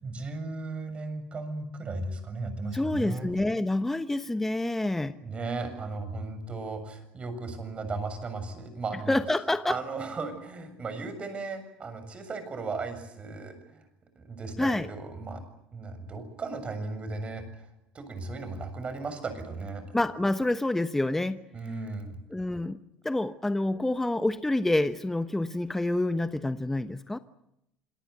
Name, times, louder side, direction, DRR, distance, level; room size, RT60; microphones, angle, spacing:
voice 1, 0.0-3.3 5.2-9.2 9.7-13.8 14.2-15.4 15.7-17.7 17.9-19.8 21.5-22.2, right 3 dB, 30° right, 9 dB, 7.1 m, -36 dB
voice 2, 2.7-5.2 9.1-9.8 14.6-14.9 19.9-21.4 22.3-22.8 23.0-27.2, left 2 dB, 10° left, 11 dB, 1.1 m, -27 dB
27.0 x 19.0 x 9.5 m, 0.80 s
supercardioid pair, 100°, 4 cm